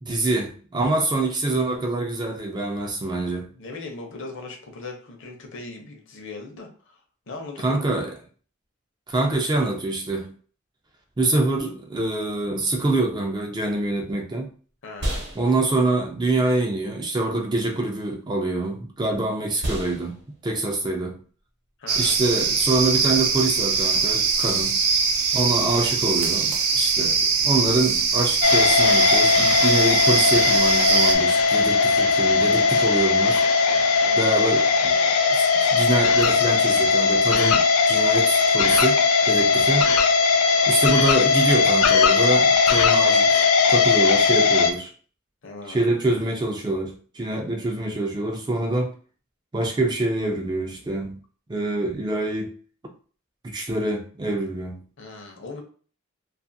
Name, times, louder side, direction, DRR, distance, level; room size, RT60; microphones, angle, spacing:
voice 1, 0.0-3.5 7.6-8.1 9.1-10.3 11.2-14.5 15.4-21.2 22.0-24.8 25.3-33.4 34.2-39.9 40.7-44.9 45.7-48.9 49.5-51.2 51.5-52.5 53.4-54.8, right 2 dB, 20° right, 0.3 m, -25 dB
voice 2, 3.5-7.0 7.3-7.9 14.8-15.2 21.8-22.2 34.0-34.4 45.4-45.9 55.0-55.6, left 3 dB, 60° left, 0.7 m, -39 dB
sound 1, 14.4-23.3, right 1 dB, 50° right, 0.8 m, -37 dB
sound 2, 21.9-31.1, right 5 dB, 80° right, 0.5 m, -22 dB
sound 3, 28.4-44.7, left 4 dB, 90° left, 0.4 m, -19 dB
2.5 x 2.4 x 2.6 m
head